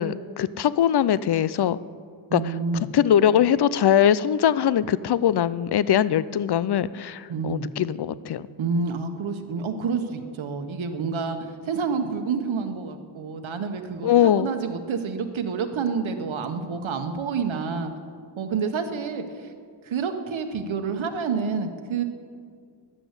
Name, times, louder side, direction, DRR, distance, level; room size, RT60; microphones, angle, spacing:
voice 1, 0.0-1.8 2.3-2.4 2.9-8.5 14.0-14.5, left 10 dB, 60° left, 17 dB, 0.5 m, -21 dB
voice 2, 2.3-2.8 7.3-7.7 8.6-17.9 18.4-19.5 19.8-22.0, right 5 dB, 90° right, 6 dB, 1.2 m, -28 dB
13.0 x 10.0 x 8.1 m, 2.1 s
wide cardioid pair, 115°, 46 cm